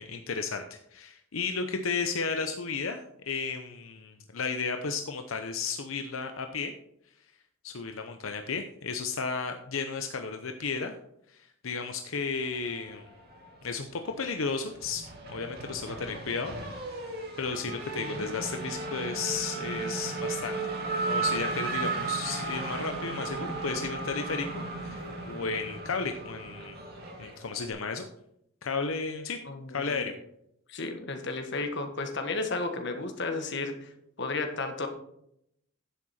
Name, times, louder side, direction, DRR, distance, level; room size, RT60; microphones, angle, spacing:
voice 1, 0.0-6.7 7.6-10.9 11.3-13.0 13.6-15.0 15.3-17.1 17.4-20.6 21.0-26.8 27.2-28.1 28.6-29.4 29.7-30.1, left 5 dB, 85° left, 6 dB, 0.8 m, -33 dB
Race car auto racing / Accelerating revving vroom, 12.7-13.7 14.0-27.7, right 3 dB, 50° right, 2.1 m, -35 dB
voice 2, 29.4-30.1 30.7-33.9 34.2-34.9, left 3 dB, 60° left, 5 dB, 1.5 m, -33 dB
10.5 x 7.6 x 4.2 m, 0.76 s
head